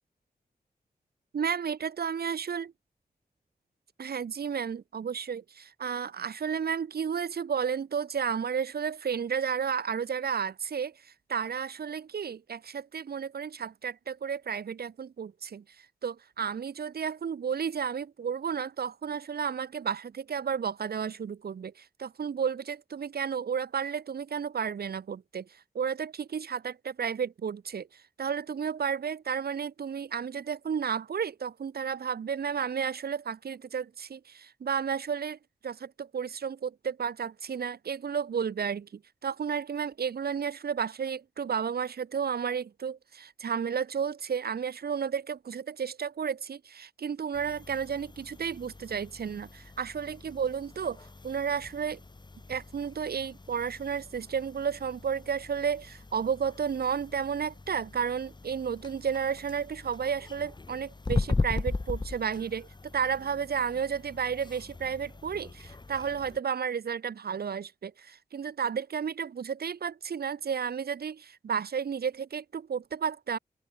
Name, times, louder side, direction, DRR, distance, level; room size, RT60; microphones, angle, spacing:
voice 1, 1.3-2.7 4.0-15.6 16.0-25.5 25.7-52.0 52.5-62.7 62.9-73.4, right 7 dB, 75° right, 1.3 m, -32 dB
sound 1, 47.3-66.4, left 3 dB, 25° left, 2.0 m, -39 dB
open air
wide cardioid pair, 135°, 16 cm